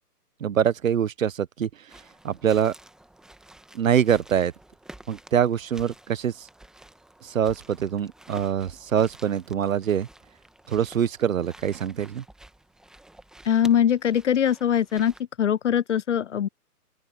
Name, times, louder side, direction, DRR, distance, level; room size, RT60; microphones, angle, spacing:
voice 1, 0.4-1.7 2.2-2.7 3.7-4.5 5.1-6.5 7.2-10.1 10.7-12.2, right 8 dB, 55° right, 1.3 m, -24 dB
sound 1, 1.9-15.2, right 1 dB, ahead, 1.3 m, -50 dB
voice 2, 13.5-15.1 15.4-16.5, left 9 dB, 50° left, 0.6 m, -22 dB
open air
figure-of-eight pair, 135°, 46 cm